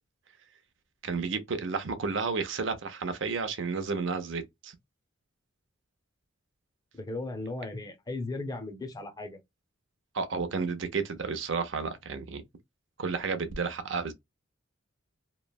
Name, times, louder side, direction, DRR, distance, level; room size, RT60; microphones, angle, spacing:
voice 1, 1.0-4.7 10.1-12.4 13.0-14.1, right 4 dB, 70° right, 0.6 m, -32 dB
voice 2, 6.9-9.4, left 2 dB, 20° left, 0.5 m, -36 dB
3.0 x 2.0 x 2.2 m
head